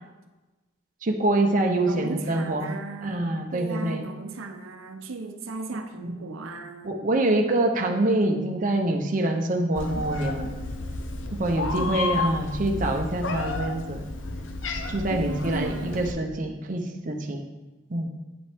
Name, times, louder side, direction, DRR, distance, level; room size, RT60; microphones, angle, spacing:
voice 1, 1.0-2.7 3.0-4.0 5.7-6.2 6.8-10.5 11.3-14.0 14.9-17.4 17.9-18.1, right 1 dB, 40° right, 3 dB, 0.6 m, -25 dB
voice 2, 1.8-3.2 3.5-7.0 11.6-11.9 15.1-16.0, right 3 dB, 85° right, 6 dB, 0.6 m, -36 dB
Meow, 9.8-16.1, left 3 dB, 70° left, 0.7 m, -31 dB
8.7 x 5.4 x 3.5 m, 1.1 s
head